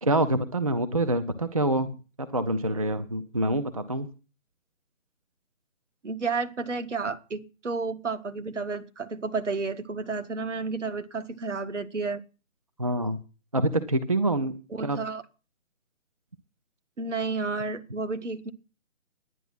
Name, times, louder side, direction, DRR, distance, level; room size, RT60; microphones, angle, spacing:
voice 1, 0.0-4.1 12.8-13.2 13.5-15.0, right 1 dB, 25° right, 0.5 m, -26 dB
voice 2, 6.0-12.2 14.7-15.2 17.0-18.5, right 4 dB, 60° right, 1.4 m, -31 dB
10.5 x 9.6 x 6.0 m
figure-of-eight pair, 145°, 40 cm